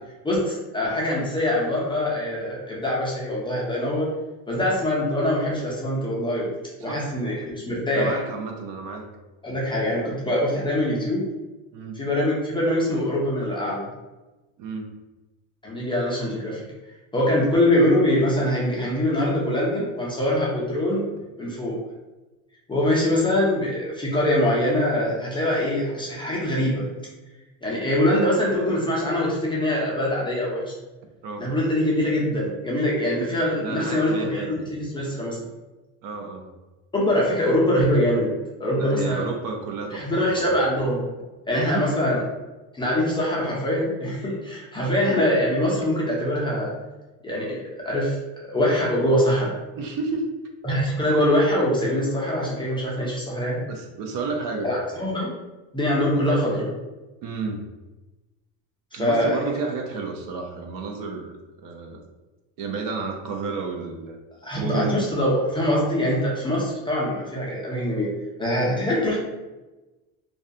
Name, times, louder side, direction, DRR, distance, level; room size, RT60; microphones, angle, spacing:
voice 1, 0.2-4.1 4.5-6.5 6.8-8.2 9.4-11.3 11.9-13.9 15.6-16.7 17.1-21.1 21.4-21.8 22.7-26.9 27.6-30.7 31.4-35.4 36.9-38.3 38.6-39.3 39.9-41.0 41.5-42.2 42.7-46.7 47.2-48.2 48.4-49.6 50.6-53.6 54.6-55.3 55.7-56.7 58.9-59.4 64.4-68.1 68.4-69.2, left 1 dB, 10° left, -6 dB, 0.4 m, -23 dB
voice 2, 6.8-7.2 7.9-9.1 11.7-12.0 14.6-14.9 31.2-31.5 33.6-34.6 36.0-36.5 38.8-40.5 41.6-42.0 49.8-50.3 53.7-54.7 57.2-57.6 58.9-61.3 61.6-62.0 62.6-64.2 64.6-65.1, right 4 dB, 50° right, 3 dB, 0.5 m, -31 dB
2.3 x 2.1 x 2.6 m, 1.1 s
supercardioid pair, 115°, 43 cm